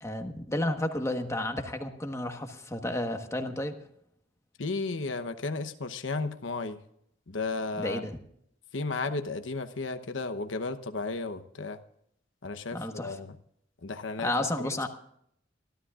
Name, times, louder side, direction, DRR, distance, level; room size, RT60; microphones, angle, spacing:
voice 1, 0.0-3.8 7.8-8.2 12.7-13.1 14.2-14.9, left 1 dB, 15° left, 5 dB, 1.3 m, -32 dB
voice 2, 4.6-6.8 7.3-8.0 8.7-11.8 12.4-13.3 13.8-14.3 14.6-14.9, left 3 dB, 90° left, 8 dB, 1.0 m, -34 dB
25.5 x 13.0 x 2.5 m, 0.70 s
head